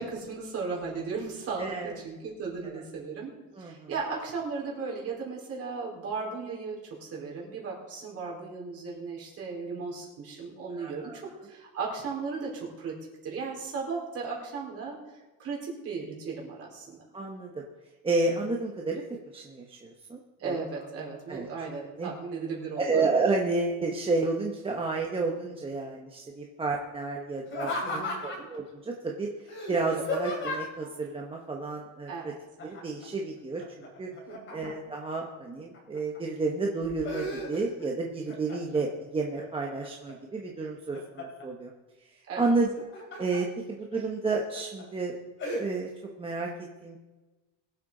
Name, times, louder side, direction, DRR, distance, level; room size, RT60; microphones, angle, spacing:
voice 1, 0.0-13.0 13.2-17.0 20.4-23.1 27.8-28.2 29.9-30.0 32.1-32.4 34.3-34.6 42.3-42.5, right 4 dB, 35° right, -3 dB, 4.1 m, -36 dB
voice 2, 1.6-2.0 2.6-2.8 3.5-3.9 10.8-11.2 17.1-17.6 18.0-19.0 19.3-20.6 21.3-21.5 21.9-22.1 22.8-29.3 29.7-32.3 32.6-34.1 34.5-41.7 42.4-42.8 43.2-45.2 45.6-45.9 46.2-46.5 46.8-47.0, right 3 dB, 15° right, 0 dB, 0.8 m, -31 dB
Laughter, 27.5-28.6 29.5-30.9 32.6-33.1 33.4-35.0 35.5-36.2 36.6-37.9 38.3-38.9 39.4-40.1 40.6-41.5 42.6-43.4 43.9-44.0 44.6-44.8 45.4-45.6, left 2 dB, 30° left, 3.1 m, -35 dB
22.5 x 7.9 x 3.8 m, 1.2 s
cardioid pair, 175°, 40 cm